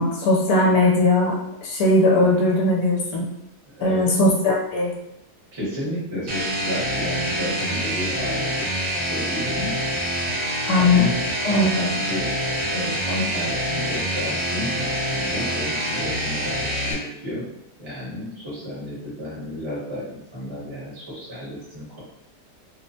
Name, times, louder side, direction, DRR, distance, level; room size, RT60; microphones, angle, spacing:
voice 1, 0.0-1.3 1.6-3.2 3.8-4.9 10.7-11.1 11.4-11.7, left 2 dB, 70° left, -3 dB, 1.0 m, -19 dB
voice 2, 3.8-4.1 5.5-8.7 9.0-9.7 10.7-11.2 11.4-17.5 17.8-22.0, left 1 dB, 20° right, -8 dB, 0.9 m, -32 dB
sound 1, 6.3-16.9, equal, 70° right, 1.3 m, -26 dB
2.9 x 2.1 x 2.6 m, 0.88 s
omnidirectional pair, 1.7 m